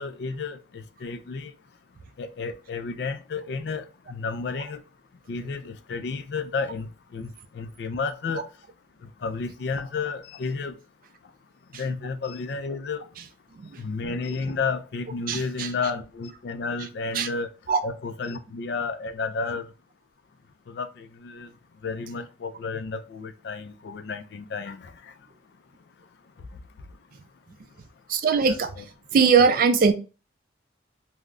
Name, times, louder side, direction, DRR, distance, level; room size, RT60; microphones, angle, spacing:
voice 1, 0.0-1.5 2.2-4.8 5.3-8.4 9.2-10.8 11.8-13.0 13.8-17.5 17.8-19.7 20.7-21.5 21.8-24.9 28.5-28.8, left 4 dB, 60° left, 0.3 m, -32 dB
voice 2, 15.3-15.7 17.1-17.3 17.7-17.8 28.1-29.9, right 5 dB, 45° right, 0.3 m, -21 dB
2.3 x 2.0 x 3.5 m
head